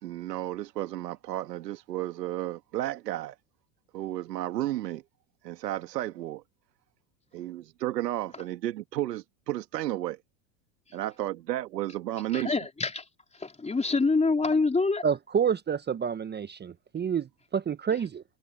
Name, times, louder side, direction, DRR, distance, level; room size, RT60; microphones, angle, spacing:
voice 1, 0.0-3.3 3.9-5.0 5.4-6.4 7.3-10.2 10.9-12.6, right 14 dB, 85° right, 2.1 m, -33 dB
voice 2, 12.3-13.0 13.4-15.0, left 3 dB, 15° left, 4.0 m, -25 dB
voice 3, 15.0-18.2, right 7 dB, 20° right, 0.9 m, -28 dB
hypercardioid pair, 95°, 48 cm